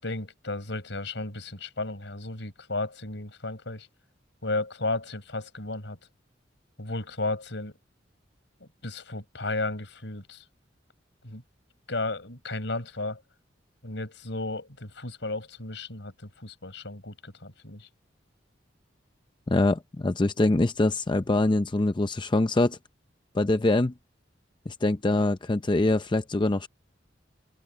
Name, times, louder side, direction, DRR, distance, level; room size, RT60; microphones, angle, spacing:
voice 1, 0.0-3.9 4.4-6.0 6.8-7.7 8.6-10.4 11.2-11.4 11.9-13.2 13.8-17.9, left 2 dB, 70° left, 6.7 m, -34 dB
voice 2, 19.5-22.8 23.3-23.9 24.7-26.7, left 2 dB, 25° left, 0.6 m, -24 dB
open air
head